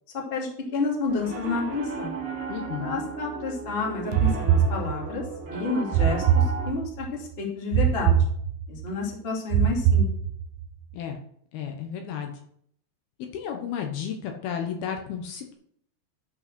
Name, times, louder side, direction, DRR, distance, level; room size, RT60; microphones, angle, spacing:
voice 1, 0.1-2.1 2.8-8.2 8.7-10.1, left 3 dB, 20° left, -2 dB, 1.7 m, -30 dB
Piano, 1.1-6.7, right 4 dB, 25° right, 2.1 m, -35 dB
voice 2, 2.5-3.0 10.9-11.2 11.5-12.3 13.3-15.5, left 8 dB, 75° left, 4 dB, 2.8 m, -33 dB
sound 1, 4.1-5.3 5.9-7.1 7.7-8.9 9.5-10.7, right 8 dB, 85° right, 2.6 m, -23 dB
12.5 x 5.5 x 6.1 m, 0.67 s
omnidirectional pair, 4.8 m